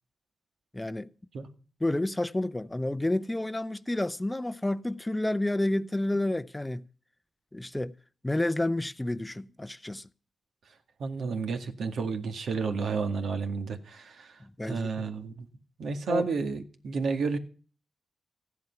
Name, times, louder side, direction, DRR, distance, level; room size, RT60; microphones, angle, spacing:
voice 1, 0.7-1.1 1.8-6.8 7.5-7.9 8.2-10.1 14.4-15.0 16.1-16.3, left 1 dB, 15° left, 0.7 m, -30 dB
voice 2, 11.0-14.3 14.6-15.5 15.8-17.4, right 4 dB, 75° right, 2.0 m, -31 dB
15.0 x 10.5 x 5.9 m
cardioid pair, 85°, 0 cm